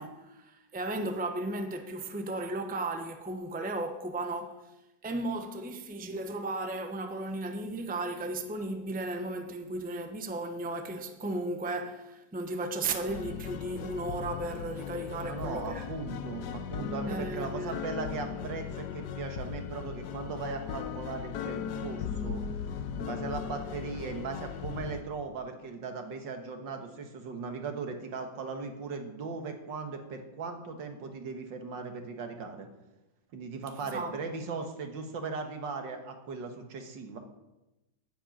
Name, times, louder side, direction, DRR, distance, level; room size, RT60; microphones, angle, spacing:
voice 1, 0.0-4.6 5.0-15.8 17.1-17.8 33.9-34.1, right 2 dB, 10° right, 0.6 m, -35 dB
sound 1, 13.1-25.0, left 7 dB, 70° left, 1.3 m, -38 dB
voice 2, 15.2-22.4 23.0-32.7 33.3-37.2, right 4 dB, 85° right, 2.1 m, -38 dB
10.0 x 7.5 x 9.1 m
omnidirectional pair, 2.0 m